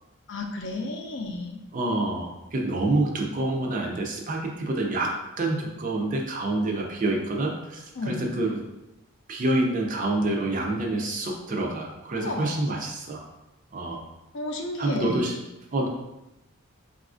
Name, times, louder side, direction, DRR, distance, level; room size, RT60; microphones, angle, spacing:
voice 1, 0.3-1.6 8.0-8.3 12.1-12.7 14.3-15.4, left 2 dB, 55° left, 2 dB, 0.4 m, -32 dB
voice 2, 1.7-8.6 9.3-13.2 13.7-14.0 14.8-15.3 15.7-15.9, right 2 dB, 35° right, 1 dB, 0.4 m, -27 dB
4.0 x 2.4 x 2.4 m, 0.95 s
head